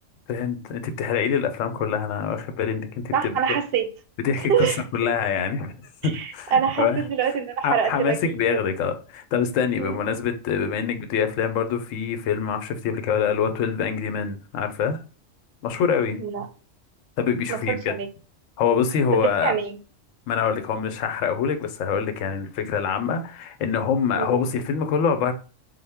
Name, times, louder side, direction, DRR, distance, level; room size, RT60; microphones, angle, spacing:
voice 1, 0.3-3.4 4.2-4.7 4.9-5.7 6.0-7.0 7.6-15.0 15.6-16.2 17.2-17.9 18.6-19.5 20.3-25.3, left 7 dB, 85° left, 1.0 m, -25 dB
voice 2, 3.1-3.9 4.5-4.8 6.1-8.6 9.8-9.9 16.1-16.5 17.5-18.1 19.1-19.8 24.2-24.4, right 7 dB, 60° right, 0.7 m, -25 dB
3.7 x 2.0 x 3.4 m
omnidirectional pair, 1.3 m